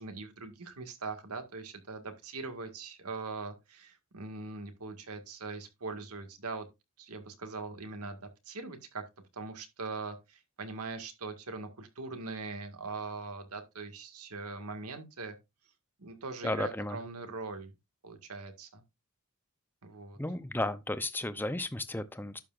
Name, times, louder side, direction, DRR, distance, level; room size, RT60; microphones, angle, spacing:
voice 1, 0.0-6.7 7.0-9.0 9.3-15.4 16.0-17.7 18.0-18.8 19.8-20.2, right 3 dB, 90° right, 1.9 m, -41 dB
voice 2, 16.4-17.0 20.2-22.4, left 1 dB, 10° left, 0.6 m, -34 dB
11.5 x 7.7 x 2.5 m
head